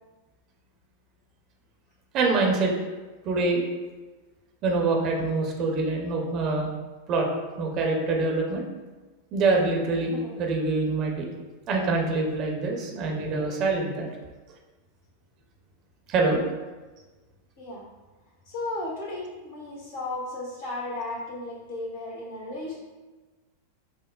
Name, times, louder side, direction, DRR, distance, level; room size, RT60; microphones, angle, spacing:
voice 1, 2.1-2.7 3.2-3.6 4.6-6.7 7.1-7.3 7.6-8.7 9.3-11.3 11.7-14.1 16.1-16.4, right 3 dB, 35° right, 0 dB, 0.7 m, -25 dB
voice 2, 18.5-22.8, left 2 dB, 55° left, -4 dB, 1.2 m, -35 dB
5.9 x 2.1 x 2.3 m, 1.2 s
figure-of-eight pair, 90°, 0 cm